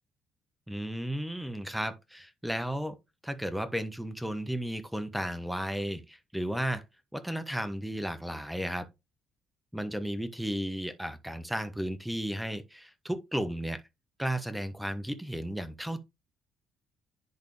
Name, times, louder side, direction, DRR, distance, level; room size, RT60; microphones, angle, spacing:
voice 1, 0.7-3.0 3.2-6.8 7.1-8.9 9.7-13.8 14.2-16.0, equal, 5° right, 1.4 m, -34 dB
10.5 x 4.1 x 3.4 m
hypercardioid pair, 50°, 0 cm